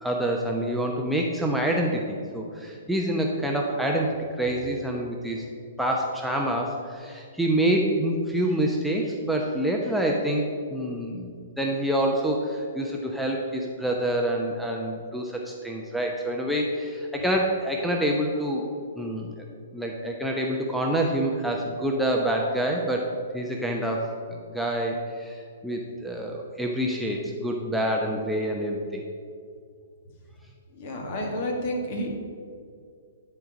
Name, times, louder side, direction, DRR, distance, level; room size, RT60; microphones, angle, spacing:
voice 1, 0.0-5.4 5.8-18.6 19.0-19.3 19.7-29.0, right 1 dB, ahead, -1 dB, 0.9 m, -27 dB
voice 2, 30.7-32.1, equal, 45° left, 1 dB, 2.0 m, -30 dB
12.0 x 4.6 x 6.4 m, 2.2 s
figure-of-eight pair, 115°, 0 cm